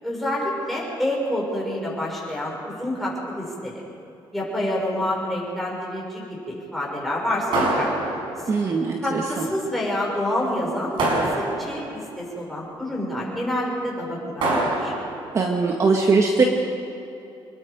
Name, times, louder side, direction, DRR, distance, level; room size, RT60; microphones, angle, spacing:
voice 1, 0.0-3.8 4.3-8.5 9.0-11.1 11.3-14.9, left 1 dB, ahead, -5 dB, 6.5 m, -28 dB
sound 1, 7.5-8.6 11.0-12.0 14.4-15.3, right 2 dB, 65° right, 6.2 m, -24 dB
voice 2, 8.5-9.5 15.3-16.4, right 4 dB, 35° right, 1 dB, 1.8 m, -21 dB
27.0 x 21.0 x 5.3 m, 2.8 s
cardioid pair, 150°, 9 cm